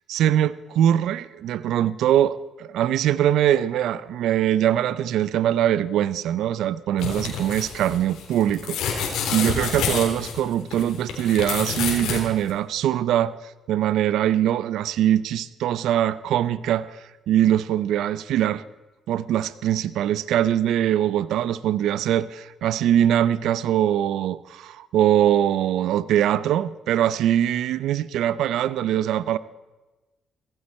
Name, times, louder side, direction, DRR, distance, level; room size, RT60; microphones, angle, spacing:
voice 1, 0.1-13.3 13.7-18.6 19.1-29.4, right 11 dB, 80° right, 17 dB, 0.5 m, -22 dB
sound 1, 7.0-12.2 12.5-12.6, left 6 dB, 85° left, 3.4 m, -28 dB
16.5 x 15.5 x 4.3 m, 1.1 s
cardioid pair, 90°, 0 cm